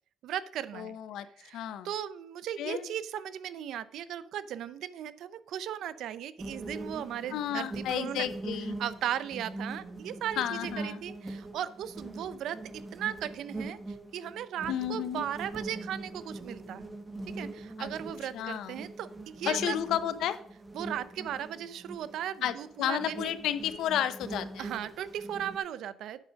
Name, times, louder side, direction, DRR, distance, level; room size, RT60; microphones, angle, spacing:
voice 1, 0.2-1.0 1.4-8.3 8.8-13.8 14.1-16.9 17.4-19.8 20.7-23.3 24.6-26.3, right 10 dB, 80° right, 16 dB, 0.5 m, -37 dB
voice 2, 0.7-1.3 1.5-1.9 2.6-2.9 7.3-8.8 10.4-11.0 14.7-15.3 17.8-17.9 18.3-18.8 19.4-20.4 22.4-24.7, left 10 dB, 85° left, 12 dB, 0.6 m, -32 dB
sound 1, 6.4-25.6, right 2 dB, 20° right, 1.5 m, -42 dB
9.0 x 5.2 x 6.2 m, 0.64 s
cardioid pair, 90°, 0 cm